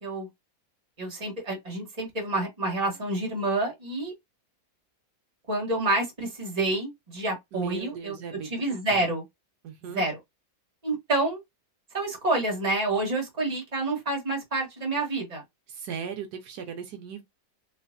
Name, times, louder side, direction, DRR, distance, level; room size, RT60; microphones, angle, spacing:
voice 1, 1.0-4.1 5.5-8.2 8.5-9.2 9.8-10.2 10.8-11.4 11.9-15.4, right 2 dB, 25° right, 1.4 m, -28 dB
voice 2, 7.5-8.5 8.9-9.1 9.6-10.0 15.7-17.2, right 7 dB, 75° right, 1.2 m, -37 dB
3.2 x 3.1 x 2.6 m
omnidirectional pair, 1.7 m